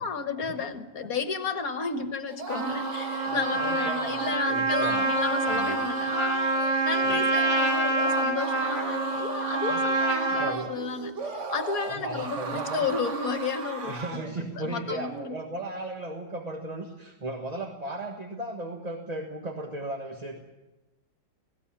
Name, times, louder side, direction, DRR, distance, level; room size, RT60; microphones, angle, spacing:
voice 1, 0.0-15.4, left 5 dB, 50° left, 9 dB, 1.7 m, -33 dB
sound 1, 2.3-14.4, right 4 dB, 40° right, 1.6 m, -37 dB
Trumpet, 2.5-10.5, right 2 dB, 60° right, 3.1 m, -27 dB
voice 2, 3.2-5.1 5.5-5.8 7.0-7.2 9.7-9.8 10.3-10.7 11.9-12.9 13.8-20.4, right 2 dB, 20° right, 2 dB, 1.4 m, -36 dB
19.0 x 17.0 x 8.8 m, 1.1 s
omnidirectional pair, 2.0 m